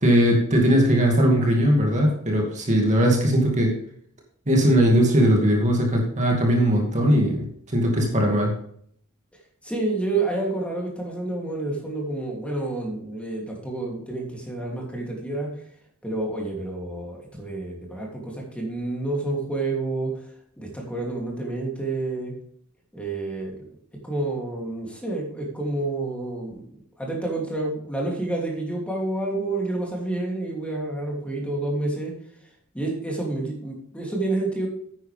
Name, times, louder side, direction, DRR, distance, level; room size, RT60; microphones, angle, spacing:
voice 1, 0.0-3.8 4.5-8.5, equal, 35° right, 0 dB, 2.3 m, -19 dB
voice 2, 9.6-15.5 16.0-20.1 20.6-22.3 22.9-23.5 24.0-26.6 27.0-32.1 32.7-34.7, right 2 dB, 5° left, -2 dB, 2.9 m, -29 dB
11.0 x 9.4 x 3.5 m, 0.64 s
head